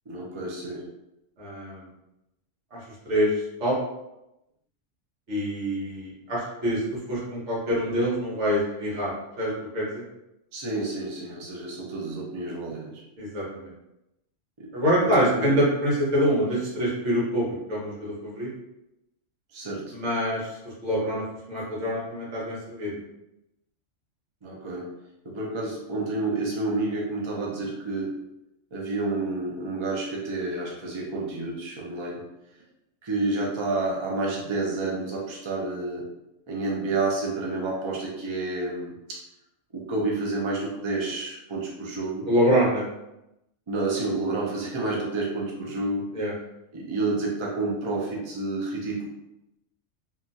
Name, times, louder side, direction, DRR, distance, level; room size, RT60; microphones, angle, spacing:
voice 1, 0.1-0.8 10.5-13.0 14.6-14.7 15.0-15.5 19.5-19.9 24.4-24.9 25.2-28.1 28.7-32.2 33.0-36.1 36.5-39.2 39.7-42.3 43.7-46.1 46.7-49.1, right 2 dB, 40° right, -3 dB, 0.4 m, -29 dB
voice 2, 1.4-1.9 2.7-3.8 5.3-10.0 13.2-13.7 14.7-18.5 19.9-23.0 42.3-42.8 46.1-46.3, equal, 70° right, -6 dB, 1.4 m, -26 dB
3.0 x 2.2 x 2.6 m, 0.90 s
omnidirectional pair, 1.3 m